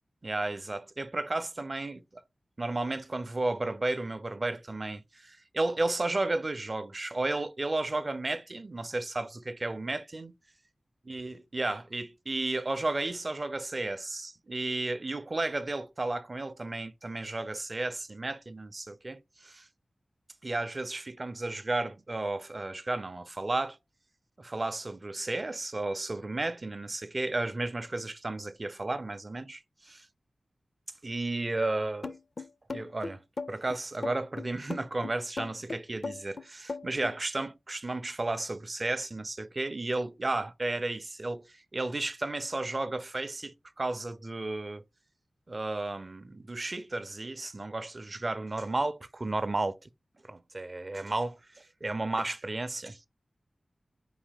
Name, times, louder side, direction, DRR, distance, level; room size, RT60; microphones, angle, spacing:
voice 1, 0.2-2.0 2.6-10.3 11.1-19.6 20.4-23.8 24.4-30.1 31.0-32.2 32.7-33.2 33.5-41.4 41.7-44.8 45.5-49.8 50.3-53.0, right 2 dB, 40° right, 0.5 m, -33 dB
sound 1, 32.0-37.2, left 3 dB, 55° left, 0.4 m, -38 dB
5.0 x 2.8 x 3.6 m
wide cardioid pair, 80°, 0 cm